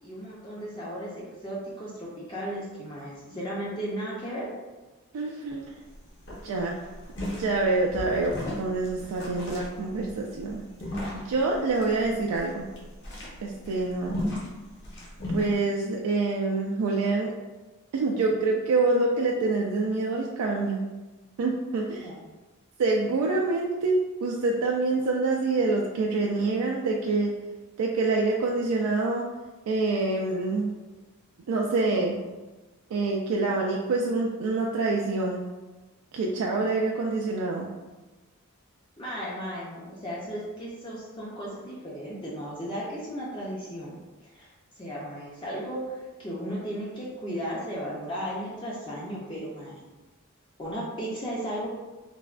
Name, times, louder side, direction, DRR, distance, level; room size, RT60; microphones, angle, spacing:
voice 1, 0.0-4.5 22.0-22.2 39.0-44.5 44.8-49.8 50.6-51.7, equal, 20° left, -6 dB, 0.4 m, -35 dB
voice 2, 5.1-5.7 6.4-6.8 7.3-10.6 11.1-12.7 13.4-14.2 15.3-17.3 17.9-20.8 21.4-22.1 22.8-27.3 27.8-29.3 29.7-30.7 31.5-32.2 32.9-35.4 36.1-37.7, right 3 dB, 90° right, 1 dB, 0.3 m, -26 dB
sound 1, 5.5-5.6 5.8-6.0 6.2-15.5, left 1 dB, 50° left, 0.7 m, -36 dB
3.2 x 2.1 x 2.4 m, 1.2 s
head